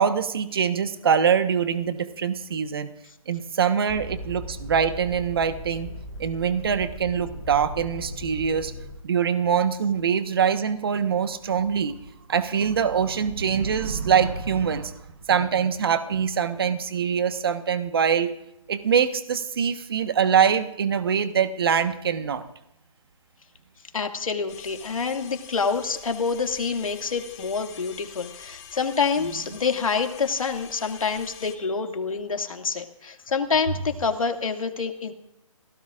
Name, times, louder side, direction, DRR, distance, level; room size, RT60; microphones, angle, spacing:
voice 1, 0.0-2.9 3.3-5.9 6.2-8.7 9.0-12.0 12.3-14.9 15.3-18.3 18.7-22.4, right 7 dB, 45° right, 9 dB, 1.3 m, -23 dB
sound 1, 3.9-9.0, equal, 10° right, 4.5 m, -38 dB
voice 2, 23.9-35.1, left 5 dB, 75° left, 4 dB, 2.2 m, -27 dB
sound 2, 24.5-31.5, left 7 dB, 30° left, 3.0 m, -45 dB
29.0 x 17.0 x 2.5 m, 0.83 s
hypercardioid pair, 170°, 17 cm